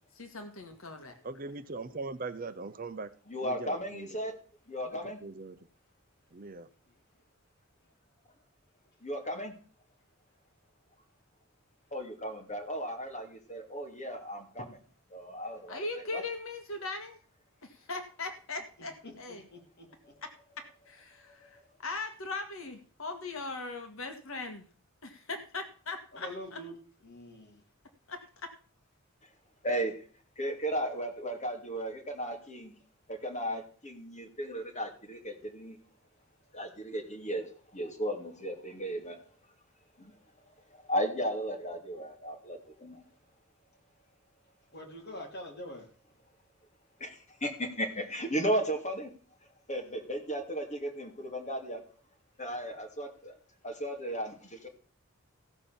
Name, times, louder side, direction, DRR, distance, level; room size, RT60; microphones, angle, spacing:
voice 1, 0.1-1.2 15.7-17.2 17.6-19.5 20.2-24.6 25.0-26.7 28.1-28.5, left 3 dB, 75° left, 1.8 m, -40 dB
voice 2, 1.2-3.1 3.4-4.1 5.2-5.6 6.3-6.7, right 3 dB, 40° right, 0.7 m, -40 dB
voice 3, 3.3-4.4 4.7-5.2 9.0-9.5 11.9-14.8 15.1-16.2 20.0-20.1 21.2-21.5 29.6-30.0 30.4-32.7 33.1-35.8 36.5-39.2 40.0-40.2 40.7-43.0 47.0-49.1 49.7-51.8 52.4-53.4 53.6-54.7, equal, 35° left, 2.6 m, -35 dB
voice 4, 19.5-19.9 26.1-26.7 27.0-27.6 44.7-45.9, equal, 50° left, 3.6 m, -44 dB
15.5 x 5.8 x 7.0 m
head